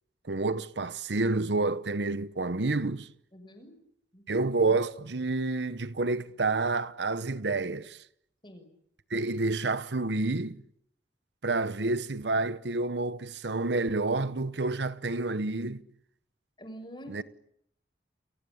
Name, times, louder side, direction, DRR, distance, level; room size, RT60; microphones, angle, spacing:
voice 1, 0.2-3.1 4.3-8.0 9.1-10.6 11.4-15.8 17.1-17.2, right 3 dB, 75° right, 1.0 m, -29 dB
voice 2, 3.3-3.7 4.1-4.2 8.4-8.7 16.6-17.2, equal, 25° left, 6.2 m, -46 dB
30.0 x 22.0 x 8.6 m
head